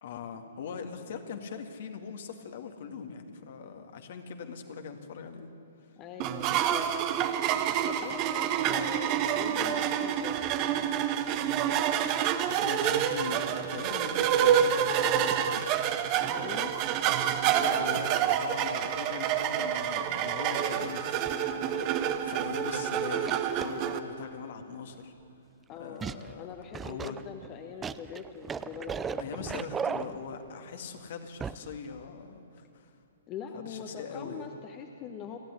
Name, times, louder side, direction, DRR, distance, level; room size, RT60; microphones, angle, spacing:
voice 1, 0.0-5.5 12.5-15.6 17.4-25.1 25.8-26.5 26.8-27.2 29.2-32.9 33.5-34.5, left 6 dB, 55° left, 5 dB, 2.0 m, -41 dB
voice 2, 6.0-7.1 7.8-10.3 16.3-16.8 25.7-26.0 26.4-29.3 33.3-35.4, left 7 dB, 30° left, 4 dB, 1.3 m, -42 dB
sound 1, 6.2-24.0, right 9 dB, 35° right, 1.1 m, -28 dB
sound 2, 21.3-21.5 22.2-22.3 23.1-23.9 26.0-26.3 26.7-30.5 31.4-31.7 32.0-32.1, right 6 dB, 15° right, 0.5 m, -36 dB
29.0 x 11.0 x 9.8 m, 2.6 s
figure-of-eight pair, 120°, 0 cm